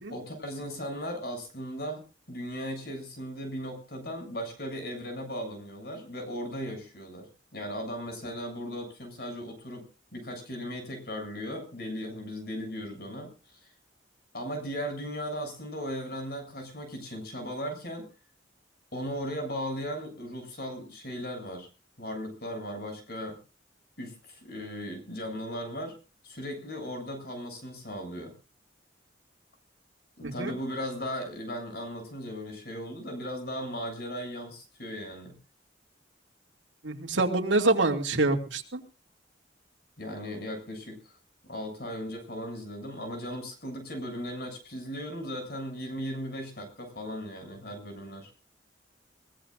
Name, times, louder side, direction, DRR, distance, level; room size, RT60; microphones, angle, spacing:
voice 1, 0.1-2.0 2.3-7.3 7.5-9.9 10.1-13.3 13.6-13.7 14.3-18.1 18.9-21.7 22.0-23.4 24.0-25.9 26.2-28.3 30.2-35.3 40.0-41.0 41.4-48.3, equal, 55° left, 5 dB, 7.5 m, -37 dB
voice 2, 36.8-38.8, right 2 dB, 85° right, 4 dB, 2.6 m, -26 dB
22.0 x 18.5 x 2.6 m, 0.34 s
head